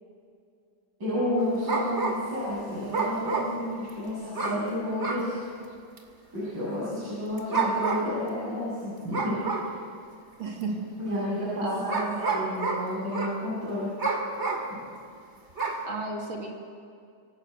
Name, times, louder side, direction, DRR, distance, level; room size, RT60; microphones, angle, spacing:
voice 1, 1.0-5.4 6.3-9.8 11.0-13.9 14.7-14.8, left 1 dB, 65° right, -10 dB, 8.5 m, -31 dB
sound 1, 1.4-2.4 2.9-3.9 4.3-4.7 5.0-5.3 6.0-6.1 7.4-8.2 9.1-9.8 10.6-10.7 11.9-13.4 14.0-14.8 15.6-15.8, right 4 dB, 35° right, 2.6 m, -29 dB
voice 2, 10.4-10.7 11.6-12.2 15.9-16.6, right 3 dB, 90° right, 0 dB, 3.7 m, -33 dB
27.0 x 18.5 x 8.0 m, 2.3 s
omnidirectional pair, 2.1 m